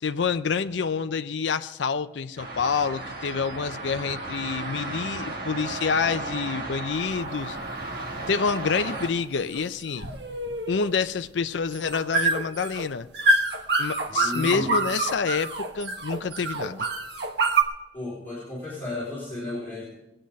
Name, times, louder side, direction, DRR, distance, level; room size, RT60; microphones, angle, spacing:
voice 1, 0.0-7.6 8.3-10.0 10.7-13.1 13.8-16.9, left 5 dB, 80° left, 11 dB, 0.5 m, -27 dB
sound 1, 2.4-9.1, right 2 dB, 50° right, 2.0 m, -34 dB
sound 2, 6.9-17.6, right 3 dB, 70° right, 1.3 m, -27 dB
voice 2, 14.1-14.7 17.9-19.9, left 2 dB, 10° left, -10 dB, 4.2 m, -33 dB
20.5 x 8.8 x 5.3 m, 0.98 s
head